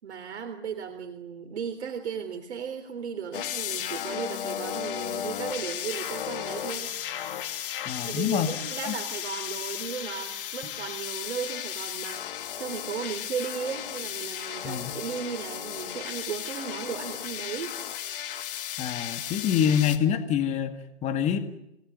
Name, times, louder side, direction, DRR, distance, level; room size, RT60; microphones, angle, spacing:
voice 1, 0.0-6.9 8.0-17.7, right 7 dB, 70° right, 5 dB, 3.5 m, -36 dB
sound 1, 3.3-20.0, left 10 dB, 50° left, 3.2 m, -35 dB
voice 2, 7.9-8.6 8.8-8.9 14.6-14.9 18.8-20.7 21.0-21.4, left 9 dB, 20° left, 8 dB, 2.0 m, -26 dB
29.5 x 20.0 x 9.6 m, 0.85 s
hypercardioid pair, 140°, 35 cm